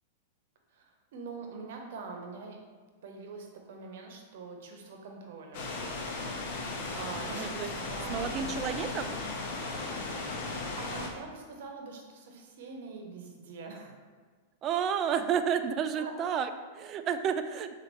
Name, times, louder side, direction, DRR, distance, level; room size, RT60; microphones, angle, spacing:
voice 1, 0.7-2.6 3.0-5.7 6.5-8.6 10.2-14.0 16.0-16.1, right 4 dB, 65° right, 2 dB, 0.8 m, -44 dB
sound 1, 5.5-11.1, left 3 dB, 55° left, 0.8 m, -36 dB
voice 2, 7.3-7.7 8.1-9.2 14.6-17.7, right 8 dB, 35° right, 9 dB, 0.3 m, -31 dB
6.6 x 2.5 x 3.0 m, 1.4 s
hypercardioid pair, 100°, 0 cm